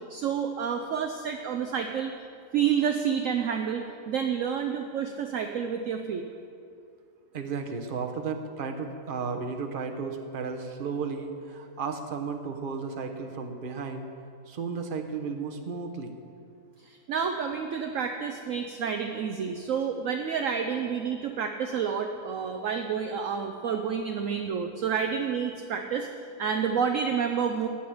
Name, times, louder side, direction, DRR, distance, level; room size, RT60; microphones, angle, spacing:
voice 1, 0.1-2.1 2.5-6.2 16.8-26.1 26.4-27.7, right 7 dB, 60° right, 5 dB, 0.9 m, -29 dB
voice 2, 7.3-14.1 14.5-16.1, right 5 dB, 35° right, 4 dB, 1.0 m, -34 dB
15.0 x 5.8 x 9.4 m, 2.4 s
omnidirectional pair, 1.8 m